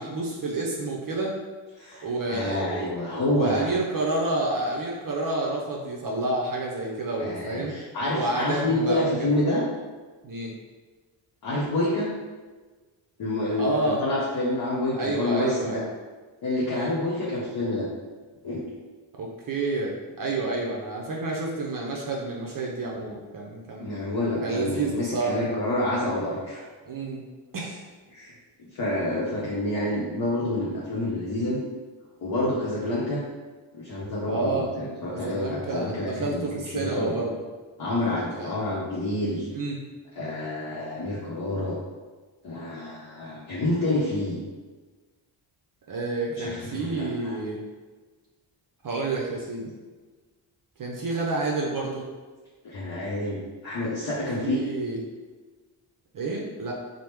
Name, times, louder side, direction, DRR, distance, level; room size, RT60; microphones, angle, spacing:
voice 1, 0.0-1.4 2.0-7.7 8.1-9.3 10.2-10.5 13.5-14.0 15.0-15.8 16.7-16.9 19.2-23.9 24.4-25.4 26.9-27.2 27.5-27.8 29.4-29.5 34.3-34.7 35.1-37.4 38.4-38.6 39.5-39.8 45.9-47.6 48.8-49.7 50.8-52.1 54.1-55.0 56.1-56.7, right 2 dB, 45° right, -2 dB, 0.6 m, -29 dB
voice 2, 1.8-3.7 7.2-9.6 11.4-12.1 13.2-15.8 16.4-17.9 18.4-18.6 23.8-26.6 28.1-28.3 28.6-31.6 32.2-33.2 33.7-36.4 36.7-37.2 37.8-39.5 40.2-41.8 42.4-44.4 46.4-47.4 52.6-54.6, left 1 dB, 50° left, -6 dB, 0.8 m, -28 dB
2.9 x 2.1 x 3.4 m, 1.3 s
supercardioid pair, 55°, 48 cm